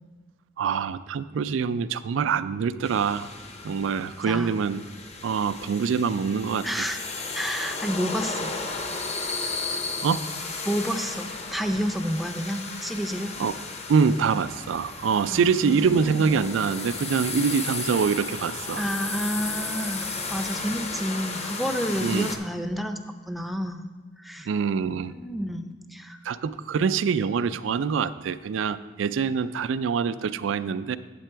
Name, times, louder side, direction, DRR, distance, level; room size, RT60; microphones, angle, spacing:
voice 1, 0.6-3.3 3.6-4.8 5.2-6.8 10.0-10.2 13.4-13.5 13.9-18.8 22.0-22.3 24.5-25.1 26.2-31.0, right 6 dB, 85° right, 13 dB, 0.3 m, -25 dB
sound 1, 2.8-22.4, left 3 dB, 35° left, 0.7 m, -34 dB
voice 2, 6.6-7.0 7.4-8.5 10.7-13.4 15.3-16.3 18.8-23.0 23.3-23.9 24.2-24.5 25.1-26.2, equal, ahead, 5 dB, 0.4 m, -30 dB
8.3 x 7.6 x 4.5 m, 1.4 s
head